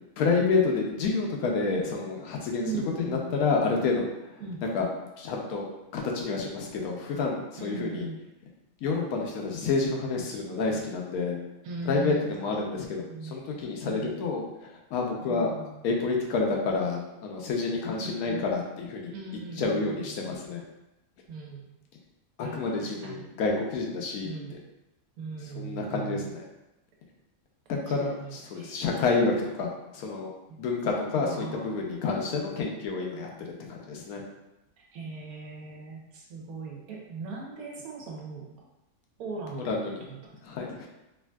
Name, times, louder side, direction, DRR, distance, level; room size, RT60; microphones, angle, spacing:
voice 1, 0.2-2.7 3.0-4.1 4.7-4.9 5.2-5.7 5.9-8.1 8.8-11.4 11.8-13.0 13.3-14.4 14.9-15.5 15.8-19.1 19.6-20.6 22.4-24.3 25.6-26.4 27.7-29.7 29.9-30.3 30.6-33.3 33.7-34.2 39.5-40.0 40.4-40.9, left 4 dB, 90° left, 0 dB, 1.1 m, -28 dB
voice 2, 2.6-3.2 4.4-4.6 7.6-8.2 11.6-12.5 13.1-13.4 13.8-14.2 15.2-15.8 18.0-18.5 19.1-20.3 21.3-21.7 22.4-23.3 24.2-24.5 25.2-26.4 27.9-28.8 30.5-30.6 31.1-31.7 34.9-38.6 39.2-40.3, right 3 dB, 85° right, -2 dB, 1.2 m, -39 dB
3.3 x 2.6 x 2.2 m, 0.96 s
omnidirectional pair, 1.5 m